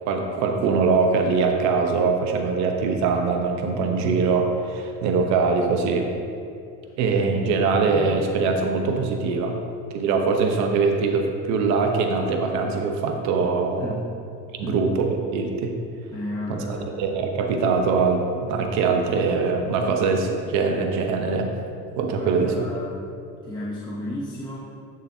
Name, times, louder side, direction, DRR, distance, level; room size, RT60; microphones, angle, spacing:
voice 1, 0.0-6.1 7.0-9.6 9.9-13.9 14.5-15.7 16.5-21.5 22.0-22.5, right 4 dB, 65° right, 3 dB, 1.0 m, -22 dB
voice 2, 13.8-14.1 14.6-14.9 16.1-17.0 22.0-22.9 23.4-24.6, left 1 dB, 15° left, -7 dB, 0.9 m, -33 dB
10.0 x 6.8 x 2.8 m, 2.5 s
cardioid pair, 130°, 30 cm